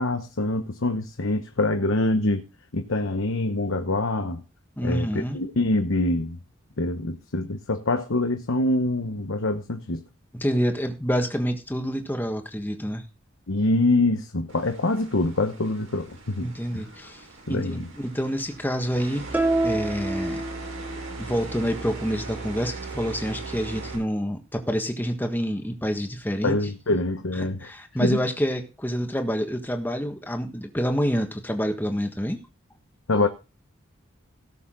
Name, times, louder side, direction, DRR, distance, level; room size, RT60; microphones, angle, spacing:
voice 1, 0.0-2.4 2.7-4.4 4.8-6.4 6.8-10.0 13.5-16.5 16.7-16.8 17.5-17.9 26.4-27.7 28.0-28.2 33.1-33.3, left 2 dB, 75° left, 1.0 m, -25 dB
voice 2, 4.8-5.4 10.3-13.0 16.4-20.4 21.2-26.6 27.3-32.4, equal, 10° left, 1.4 m, -27 dB
sound 1, 14.5-24.0, right 3 dB, 80° right, 4.8 m, -39 dB
sound 2, 19.3-21.1, right 2 dB, 10° right, 1.1 m, -27 dB
17.5 x 6.9 x 3.8 m
head